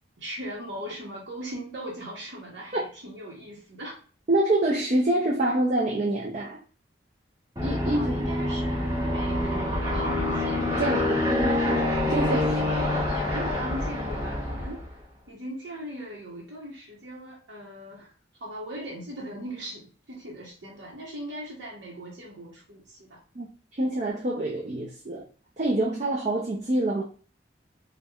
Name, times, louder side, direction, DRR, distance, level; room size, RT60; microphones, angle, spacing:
voice 1, 0.2-4.0 7.9-10.9 12.0-14.8 15.3-18.1 18.4-23.2, right 1 dB, 75° right, 0.8 m, -39 dB
voice 2, 4.3-6.6 7.6-8.2 10.8-12.5 23.3-25.3 25.6-27.0, right 1 dB, 40° right, 0.5 m, -26 dB
Aircraft, 7.6-14.9, left 1 dB, 20° right, 1.2 m, -26 dB
4.3 x 2.2 x 2.3 m
head